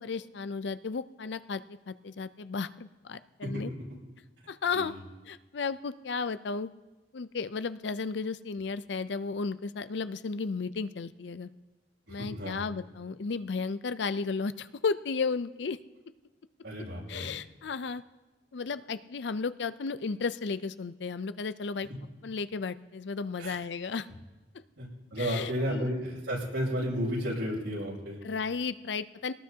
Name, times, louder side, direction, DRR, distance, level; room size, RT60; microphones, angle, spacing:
voice 1, 0.0-3.7 4.5-4.9 5.3-6.7 7.1-11.5 12.1-15.8 17.1-18.0 18.5-21.9 22.2-24.1 25.2-25.9 28.2-29.3, left 4 dB, 70° left, 14 dB, 0.5 m, -34 dB
voice 2, 12.1-12.6 16.6-17.3 23.4-23.6 24.8-28.2, equal, 90° right, -5 dB, 6.7 m, -33 dB
23.0 x 19.0 x 2.8 m, 1.2 s
head